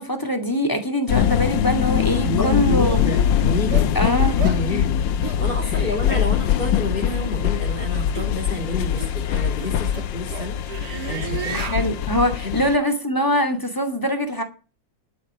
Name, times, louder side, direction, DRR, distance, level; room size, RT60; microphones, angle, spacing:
voice 1, 0.0-3.0 4.0-4.9 5.8-6.3 11.5-14.4, equal, 10° left, 2.3 m, -23 dB
sound 1, 1.1-12.8, left 10 dB, 75° left, 1.5 m, -22 dB
sound 2, 2.1-2.2 2.9-3.0 3.7-3.9 4.4-4.6 5.2-5.4 6.0-6.2 7.1-7.4 8.1-8.3 9.0-9.1 9.6-11.8, right 7 dB, 60° right, 1.9 m, -33 dB
voice 2, 2.2-10.6 11.0-11.6 12.4-12.6, left 1 dB, 25° left, 3.1 m, -29 dB
11.5 x 8.7 x 6.8 m
omnidirectional pair, 2.1 m